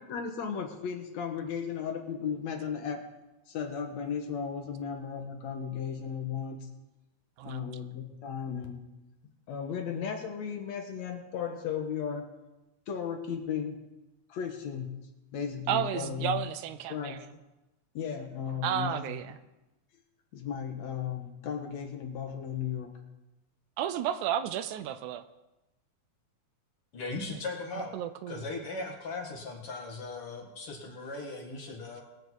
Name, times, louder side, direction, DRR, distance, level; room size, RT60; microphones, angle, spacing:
voice 1, 0.0-3.0 3.5-6.7 7.4-8.8 9.5-12.3 12.9-13.8 14.3-15.0 15.3-16.4 16.9-17.2 17.9-19.2 20.3-22.9, left 7 dB, 65° left, 4 dB, 2.3 m, -35 dB
voice 2, 7.4-7.7 15.7-17.2 18.6-19.4 23.8-25.2 27.8-28.4, right 10 dB, 80° right, 12 dB, 2.0 m, -32 dB
voice 3, 26.9-28.0 28.3-32.0, left 3 dB, 50° left, 1 dB, 2.7 m, -38 dB
21.5 x 7.7 x 4.7 m, 1.0 s
omnidirectional pair, 3.6 m